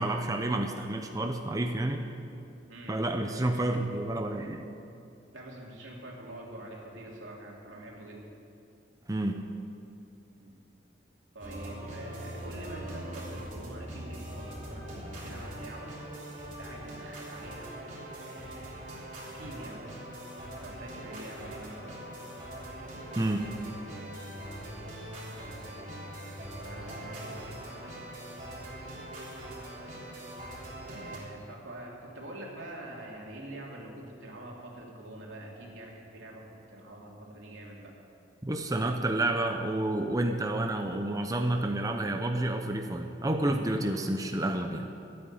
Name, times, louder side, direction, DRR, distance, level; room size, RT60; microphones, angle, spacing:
voice 1, 0.0-2.0 2.9-4.7 9.1-9.4 23.2-23.5 38.4-44.9, right 1 dB, 20° right, 4 dB, 0.7 m, -29 dB
voice 2, 5.3-8.2 10.4-10.6 11.3-15.9 16.4-17.7 18.2-18.8 19.2-19.8 20.6-22.0 25.2-25.7 26.6-27.3 30.9-37.9 43.9-44.0, right 1 dB, 90° right, -2 dB, 3.0 m, -45 dB
sound 1, 11.4-31.2, right 1 dB, 40° right, 3.5 m, -42 dB
13.0 x 8.7 x 9.0 m, 2.6 s
head